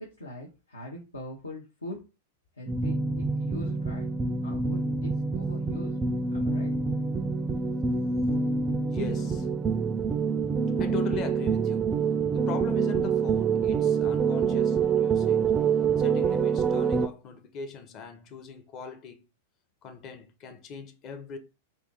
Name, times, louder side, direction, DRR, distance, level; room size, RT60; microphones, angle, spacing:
voice 1, 0.0-2.0 2.6-4.1 4.4-6.0 6.3-6.7, left 1 dB, 80° left, 0.8 m, -42 dB
sound 1, 2.7-17.1, right 5 dB, 20° right, 0.3 m, -26 dB
voice 2, 8.9-9.5 10.8-11.9 12.3-15.5 16.0-19.2 19.8-21.4, left 6 dB, 35° left, 0.6 m, -40 dB
2.8 x 2.5 x 3.7 m
figure-of-eight pair, 95°, 0 cm